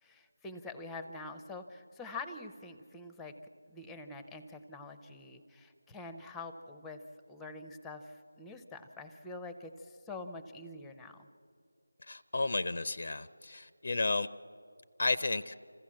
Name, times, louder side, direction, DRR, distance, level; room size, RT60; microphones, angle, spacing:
voice 1, 0.0-3.3 3.7-7.0 7.3-11.3, left 3 dB, 5° left, 8 dB, 0.7 m, -45 dB
voice 2, 12.0-14.3 15.0-15.5, left 3 dB, 55° left, 14 dB, 0.5 m, -32 dB
26.5 x 15.0 x 7.5 m, 2.4 s
figure-of-eight pair, 170°, 0 cm